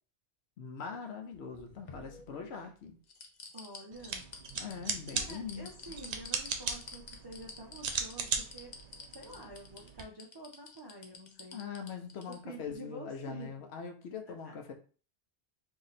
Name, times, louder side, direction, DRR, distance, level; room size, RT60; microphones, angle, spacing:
voice 1, 0.6-3.0 4.6-5.7 11.5-14.7, left 6 dB, 70° left, 4 dB, 0.9 m, -42 dB
sound 1, 1.3-2.6 3.1-12.4 12.7-12.8, left 4 dB, 50° left, 0.7 m, -49 dB
voice 2, 3.5-4.3 5.1-8.8 9.1-11.7 12.3-13.7 14.4-14.6, right 1 dB, 40° right, -1 dB, 0.3 m, -48 dB
sound 2, 3.9-10.0, right 6 dB, 75° right, 0.9 m, -38 dB
3.1 x 2.7 x 4.0 m, 0.39 s
omnidirectional pair, 1.2 m